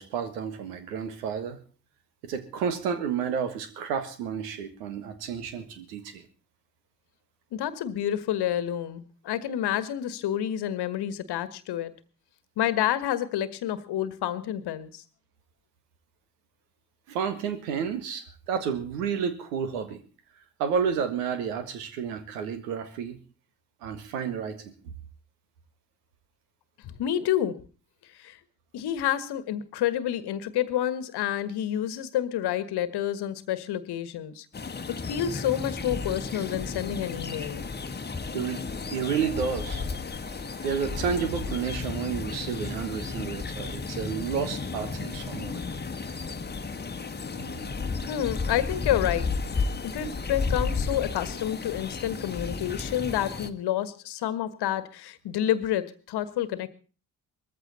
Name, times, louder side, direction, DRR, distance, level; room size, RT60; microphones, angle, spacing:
voice 1, 0.0-1.6 2.2-6.2 17.1-20.0 20.6-23.2 23.8-24.6 38.3-38.6 38.9-39.8 40.6-45.6, right 7 dB, 75° right, 10 dB, 1.8 m, -31 dB
voice 2, 7.5-11.9 12.6-15.0 26.8-27.6 28.2-28.4 28.7-34.4 34.9-37.6 48.1-49.3 49.8-56.7, left 11 dB, 55° left, 15 dB, 1.5 m, -29 dB
sound 1, 34.5-53.5, left 4 dB, 20° left, 1.4 m, -33 dB
20.0 x 14.5 x 4.2 m, 0.37 s
figure-of-eight pair, 45°, 47 cm